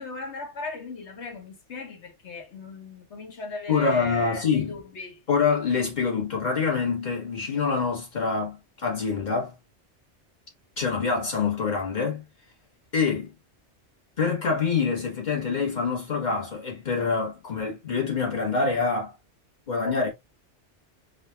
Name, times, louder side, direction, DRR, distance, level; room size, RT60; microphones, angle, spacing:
voice 1, 0.0-5.2, left 3 dB, 75° left, 1.3 m, -38 dB
voice 2, 3.7-4.8 5.3-9.5 10.8-12.2 12.9-13.3 14.2-19.1 19.7-20.1, left 5 dB, 40° left, 1.4 m, -26 dB
4.9 x 2.5 x 2.2 m
omnidirectional pair, 1.2 m